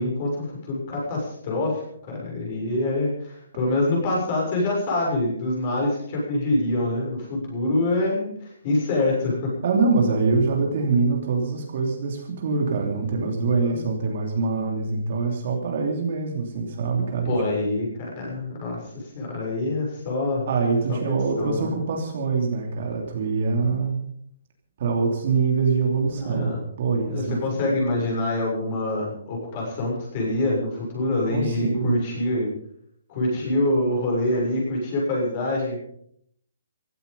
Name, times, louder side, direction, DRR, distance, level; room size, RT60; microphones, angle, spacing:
voice 1, 0.0-9.5 13.7-13.9 17.3-20.5 21.4-21.7 26.2-26.6 27.1-32.5 33.1-35.8, left 2 dB, 25° left, -2 dB, 6.9 m, -25 dB
voice 2, 9.6-17.3 20.5-24.0 24.8-27.4 31.3-32.0, right 4 dB, 40° right, 1 dB, 3.0 m, -24 dB
16.5 x 14.5 x 5.4 m, 0.66 s
hypercardioid pair, 175°, 0 cm